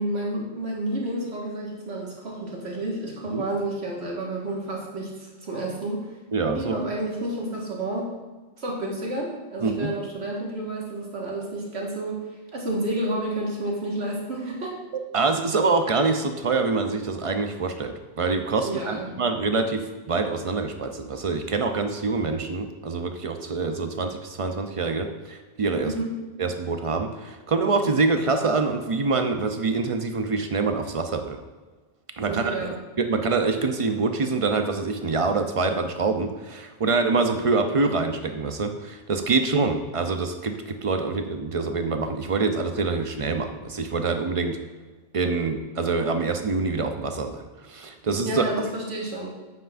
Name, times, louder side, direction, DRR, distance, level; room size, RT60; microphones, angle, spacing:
voice 1, 0.0-6.1 6.6-8.1 8.6-12.2 12.5-14.7 18.6-19.1 25.8-26.1 32.3-32.8 48.2-49.3, right 1 dB, 60° right, -2 dB, 1.9 m, -30 dB
voice 2, 6.3-6.8 9.6-9.9 15.1-25.9 26.4-31.4 32.2-32.7 33.0-44.6 45.1-48.4, right 4 dB, 45° right, 6 dB, 0.4 m, -25 dB
9.1 x 8.0 x 2.5 m, 1.3 s
omnidirectional pair, 1.2 m